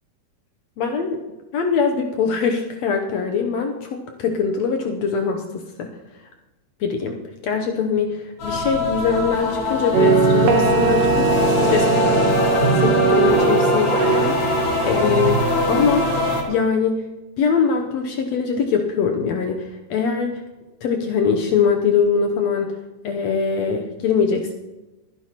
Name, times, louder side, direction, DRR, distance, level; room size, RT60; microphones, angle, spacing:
voice 1, 0.8-1.2 1.5-5.9 6.8-17.0 17.4-20.4 20.8-22.7 23.0-24.5, left 6 dB, 70° left, 3 dB, 1.9 m, -23 dB
sound 1, 8.4-16.4, left 3 dB, 50° left, 3.0 m, -23 dB
sound 2, 9.9-16.4, right 4 dB, 85° right, 2.7 m, -20 dB
22.5 x 10.0 x 3.0 m, 1.1 s
omnidirectional pair, 3.6 m